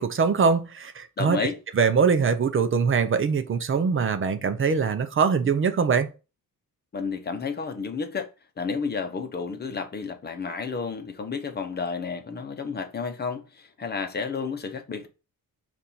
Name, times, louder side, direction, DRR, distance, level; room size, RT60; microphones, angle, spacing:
voice 1, 0.0-1.4 1.8-6.1, right 5 dB, 35° right, 0.6 m, -22 dB
voice 2, 1.2-1.6 6.9-8.3 8.6-15.1, left 5 dB, 30° left, 0.8 m, -31 dB
7.1 x 2.6 x 5.4 m
wide cardioid pair, 170°, 36 cm